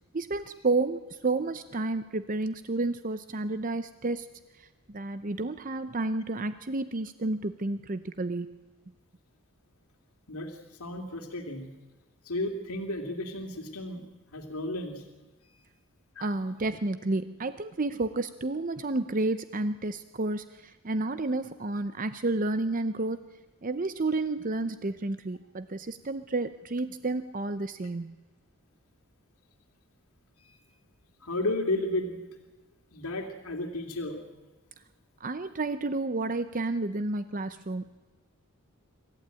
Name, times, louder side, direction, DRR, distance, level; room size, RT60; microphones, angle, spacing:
voice 1, 0.1-4.3 4.6-8.6 16.2-23.2 23.6-28.1 35.2-38.0, right 2 dB, 35° right, 12 dB, 0.6 m, -31 dB
voice 2, 10.3-11.7 12.2-14.0 14.3-15.0 15.5-15.6 16.2-16.3 30.4-30.6 31.2-32.2 32.9-34.2, left 1 dB, 80° left, 3 dB, 2.6 m, -33 dB
26.0 x 15.0 x 9.0 m, 1.2 s
head